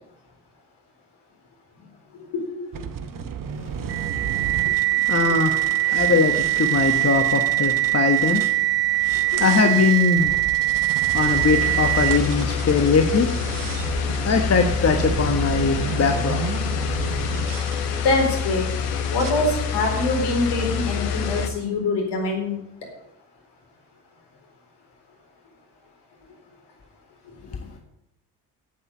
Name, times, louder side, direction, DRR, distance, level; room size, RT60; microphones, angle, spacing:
voice 1, 2.1-2.5 3.2-3.3 5.3-5.4 9.3-9.6 18.0-18.7 19.1-22.6 27.3-27.4, left 2 dB, 60° left, 1 dB, 4.2 m, -24 dB
sound 1, 2.7-8.6 9.0-17.8 18.4-18.8 19.2-19.3, right 7 dB, 45° right, 1.1 m, -33 dB
sound 2, 3.9-12.4, right 15 dB, 85° right, 1.4 m, -22 dB
voice 2, 5.0-8.4 9.4-10.3 11.1-13.3 14.2-16.4, left 5 dB, 35° left, 5 dB, 1.4 m, -21 dB
sound 3, 11.1-21.5, left 7 dB, 90° left, 1.1 m, -27 dB
8.6 x 8.6 x 8.7 m, 0.84 s
hypercardioid pair, 50°, 45 cm